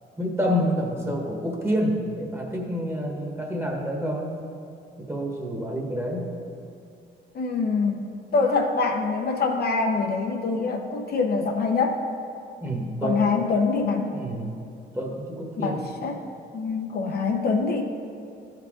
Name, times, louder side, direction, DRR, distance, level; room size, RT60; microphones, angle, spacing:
voice 1, 0.2-4.3 5.0-6.3 12.6-13.4 13.9-14.6 14.9-15.8, equal, 10° right, 0 dB, 1.5 m, -28 dB
voice 2, 7.3-8.1 8.3-12.1 13.0-14.1 15.6-16.2 16.5-17.8, left 4 dB, 50° left, 3 dB, 0.7 m, -24 dB
13.0 x 4.6 x 3.7 m, 2.5 s
cardioid pair, 90°, 20 cm